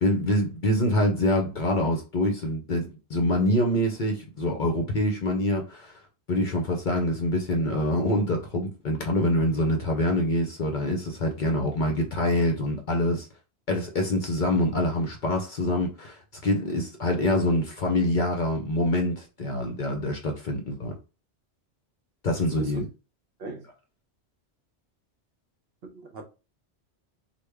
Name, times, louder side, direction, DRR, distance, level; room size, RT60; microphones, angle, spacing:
voice 1, 0.0-6.0 6.3-13.3 13.7-20.9 22.2-22.8, left 1 dB, 55° left, 0.6 m, -25 dB
voice 2, 22.4-22.8 23.4-23.7 25.8-26.2, right 3 dB, 60° right, 0.9 m, -38 dB
3.4 x 2.2 x 3.3 m
omnidirectional pair, 1.2 m